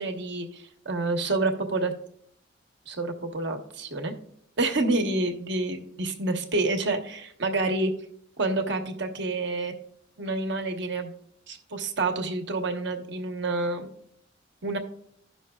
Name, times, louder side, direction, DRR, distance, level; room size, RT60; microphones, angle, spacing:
voice 1, 0.0-1.9 2.9-4.1 4.6-7.9 8.4-9.8 10.2-11.1 11.5-13.9 14.6-14.8, right 2 dB, 65° right, 4 dB, 1.1 m, -28 dB
16.5 x 5.9 x 2.3 m, 0.68 s
head